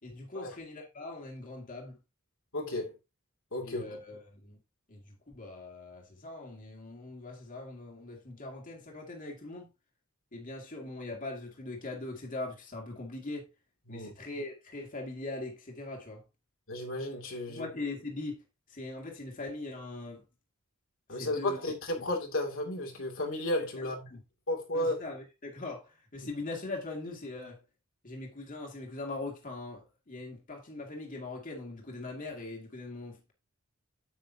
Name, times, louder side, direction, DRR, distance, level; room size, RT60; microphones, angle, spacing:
voice 1, 0.0-2.0 3.6-4.6 4.9-9.7 10.3-13.5 13.9-16.2 17.5-20.2 21.1-21.6 22.0-22.1 24.1-24.2 24.7-27.6 28.0-33.3, left 2 dB, 40° left, 2.4 m, -41 dB
voice 2, 2.5-3.0 3.5-4.0 13.9-14.1 16.7-17.7 21.1-24.1 24.5-25.0 26.2-26.3, left 1 dB, 65° left, 2.6 m, -33 dB
8.8 x 8.1 x 2.8 m
head